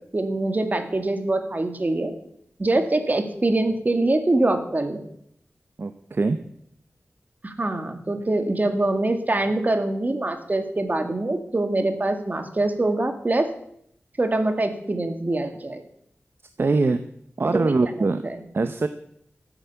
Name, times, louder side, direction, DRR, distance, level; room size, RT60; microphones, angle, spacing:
voice 1, 0.1-2.1 2.6-5.0 7.4-13.5 14.2-15.8 17.5-17.7 18.2-18.4, right 2 dB, 40° right, 7 dB, 2.0 m, -24 dB
voice 2, 5.8-6.5 16.6-17.0 17.4-18.3 18.5-18.9, right 3 dB, 55° right, 10 dB, 0.7 m, -22 dB
14.0 x 8.9 x 6.9 m, 0.71 s
wide cardioid pair, 80°, 5 cm